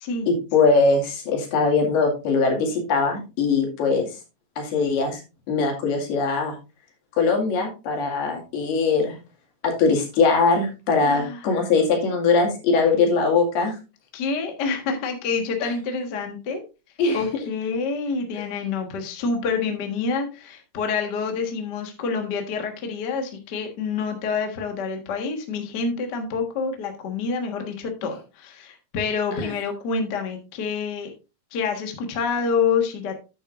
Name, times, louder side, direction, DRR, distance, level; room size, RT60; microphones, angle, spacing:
voice 1, 0.3-4.1 4.6-5.2 5.5-6.6 7.2-9.2 9.6-13.7 15.6-15.7 17.0-17.2 29.3-29.5, left 4 dB, 85° left, 1 dB, 4.2 m, -21 dB
voice 2, 11.0-11.4 14.1-16.6 17.1-31.1 31.5-33.1, left 5 dB, 65° left, 4 dB, 1.0 m, -27 dB
9.8 x 9.1 x 2.5 m, 0.29 s
omnidirectional pair, 4.4 m